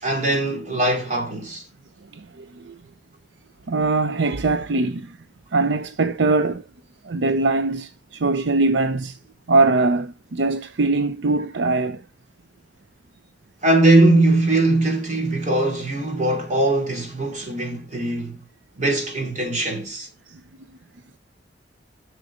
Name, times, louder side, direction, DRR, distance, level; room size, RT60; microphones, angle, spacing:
voice 1, 0.0-1.6 13.6-18.4 18.8-20.1, right 2 dB, 40° right, 2.9 m, -20 dB
voice 2, 2.1-2.8 3.7-5.2 5.5-6.6 7.0-9.2 9.5-12.0 20.3-20.4, right 3 dB, 80° right, 0.6 m, -22 dB
7.9 x 6.3 x 5.0 m
head